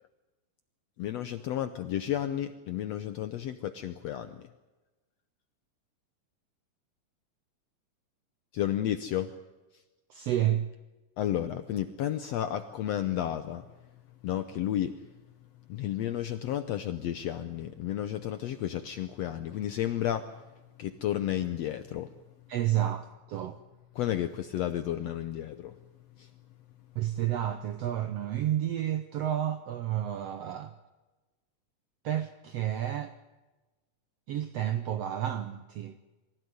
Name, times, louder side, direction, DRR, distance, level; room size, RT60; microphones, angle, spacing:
voice 1, 1.0-4.5 8.5-9.3 9.7-9.8 11.2-13.7 14.2-15.1 15.7-20.4 20.8-22.1 23.9-25.8 26.2-26.3, left 11 dB, 75° left, 1.5 m, -32 dB
voice 2, 10.1-10.7 22.5-23.6 27.0-30.7 32.0-33.1 34.3-36.0, right 11 dB, 75° right, 1.4 m, -30 dB
23.5 x 15.5 x 9.5 m
omnidirectional pair, 3.9 m